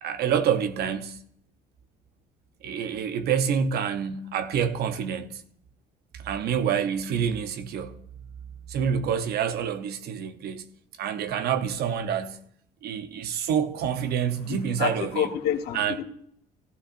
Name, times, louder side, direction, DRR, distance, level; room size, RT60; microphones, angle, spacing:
voice 1, 0.0-1.2 2.6-5.4 6.1-7.9 8.7-10.7 11.0-12.4 12.8-15.3 15.7-15.9, right 8 dB, 70° right, 0.9 m, -27 dB
voice 2, 14.5-16.0, left 9 dB, 80° left, 1.2 m, -28 dB
16.0 x 11.5 x 2.6 m
cardioid pair, 110°, 17 cm